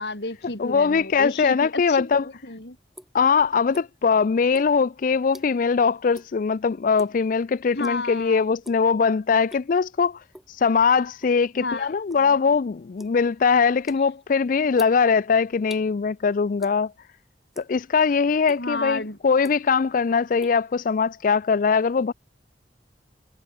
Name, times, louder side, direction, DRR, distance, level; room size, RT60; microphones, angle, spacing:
voice 1, 0.0-2.8 7.7-8.5 11.5-11.9 12.2-12.3 18.6-19.2, left 2 dB, 70° left, 4.8 m, -32 dB
voice 2, 0.6-2.3 3.1-10.2 10.6-16.9 17.6-22.1, left 5 dB, 50° left, 0.4 m, -21 dB
sound 1, 2.3-4.1 4.5-5.8 6.1-6.4 6.7-7.2 7.8-8.1 8.5-8.9 9.3-9.8 10.3-11.4 11.7-15.9 16.6-17.1 17.4-18.0 18.4-18.6 19.2-19.9 20.1-21.3, equal, ahead, 7.8 m, -47 dB
head